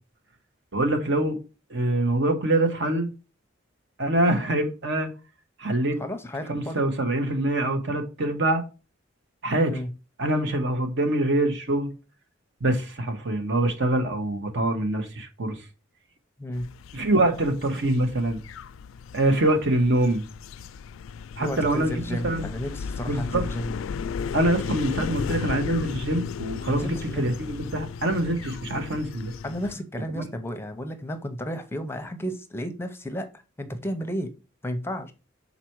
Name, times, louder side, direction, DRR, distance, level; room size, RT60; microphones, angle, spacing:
voice 1, 0.7-1.4 1.7-3.1 4.0-5.1 5.6-6.0 6.5-8.6 9.4-9.7 10.2-11.9 12.6-15.6 16.9-18.4 19.1-20.2 21.4-22.4 23.1-23.5 24.3-29.3 30.1-30.2, right 1 dB, 65° right, 1.2 m, -24 dB
voice 2, 6.0-6.8 9.7-9.9 16.4-16.7 21.4-23.8 26.7-27.3 29.4-33.3 33.6-34.3 34.6-35.1, equal, 10° left, 0.6 m, -32 dB
sound 1, 16.5-29.8, left 6 dB, 80° left, 0.3 m, -35 dB
6.0 x 4.1 x 4.5 m
head